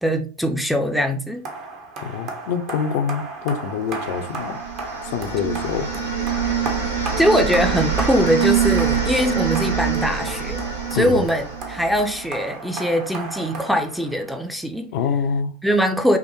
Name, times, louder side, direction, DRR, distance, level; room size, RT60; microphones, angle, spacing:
voice 1, 0.0-1.4 7.2-10.6 10.9-14.9 15.6-16.2, equal, ahead, 0.5 m, -21 dB
sound 1, 1.4-14.5, right 3 dB, 45° right, 0.9 m, -34 dB
voice 2, 2.0-4.6 5.0-6.0 10.9-11.3 14.9-15.5, left 6 dB, 55° left, 0.5 m, -25 dB
sound 2, 4.3-12.3, right 7 dB, 80° right, 1.1 m, -24 dB
5.7 x 2.1 x 3.0 m
figure-of-eight pair, 85°, 0 cm